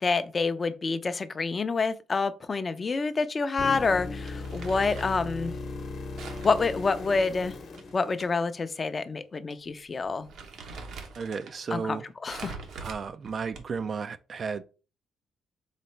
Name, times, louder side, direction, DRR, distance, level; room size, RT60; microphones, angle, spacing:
voice 1, 0.0-5.5 6.4-7.6 7.9-10.3 11.7-12.6, left 4 dB, 35° left, 0.5 m, -28 dB
sound 1, 3.6-8.6 12.6-12.7, left 3 dB, 60° left, 1.0 m, -38 dB
Crumpling crinkling, 4.3-5.3 6.2-8.3 8.6-8.7 9.5-9.7 10.0-11.6 12.3-13.9, right 4 dB, 75° right, 0.9 m, -44 dB
voice 2, 11.2-12.0 12.8-14.6, right 5 dB, 45° right, 0.4 m, -33 dB
4.1 x 3.7 x 3.2 m
cardioid pair, 90°, 0 cm